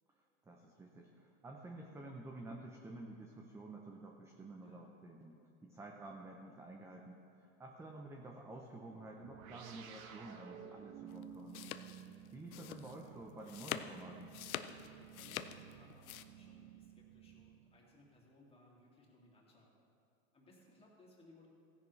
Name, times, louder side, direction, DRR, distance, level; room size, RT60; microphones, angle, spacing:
voice 1, 0.4-11.6 12.3-14.4, right 2 dB, 5° right, 1 dB, 0.5 m, -51 dB
sound 1, 9.2-18.0, right 8 dB, 75° right, 1.3 m, -54 dB
sound 2, 11.1-16.2, left 11 dB, 85° left, 0.7 m, -45 dB
voice 2, 11.5-11.9 14.7-19.7 20.3-21.5, left 1 dB, 15° left, -3 dB, 2.3 m, -64 dB
16.0 x 10.0 x 3.2 m, 2.6 s
hypercardioid pair, 125°, 41 cm